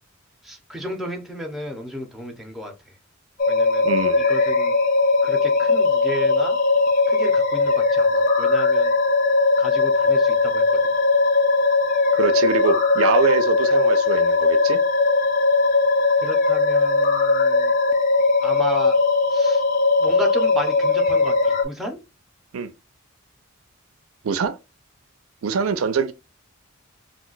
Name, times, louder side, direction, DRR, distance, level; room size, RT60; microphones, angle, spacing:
voice 1, 0.4-3.0 3.5-3.9 4.2-4.7 5.2-6.6 7.1-8.9 9.6-10.9 16.2-17.7 18.4-19.0 19.3-19.6 20.0-22.0, left 1 dB, ahead, 0.6 m, -33 dB
sound 1, 3.4-21.6, left 3 dB, 40° left, 0.5 m, -19 dB
voice 2, 3.8-4.3 12.1-14.8 22.5-22.7 24.2-24.6 25.4-26.1, right 5 dB, 80° right, 0.4 m, -24 dB
2.5 x 2.2 x 3.8 m
head